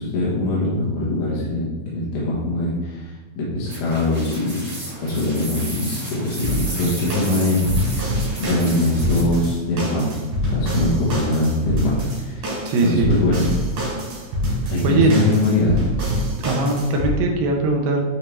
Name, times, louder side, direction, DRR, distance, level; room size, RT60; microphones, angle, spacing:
voice 1, 0.0-13.5 14.7-15.7, left 2 dB, 65° left, -6 dB, 2.5 m, -22 dB
sound 1, 3.6-9.2, right 1 dB, 25° right, 1.6 m, -34 dB
sound 2, 6.4-17.1, equal, 60° right, 4.0 m, -25 dB
voice 2, 12.7-13.2 14.8-15.1 16.4-18.0, right 3 dB, 75° right, 2 dB, 2.5 m, -20 dB
9.1 x 4.8 x 3.2 m, 1.3 s
omnidirectional pair, 4.4 m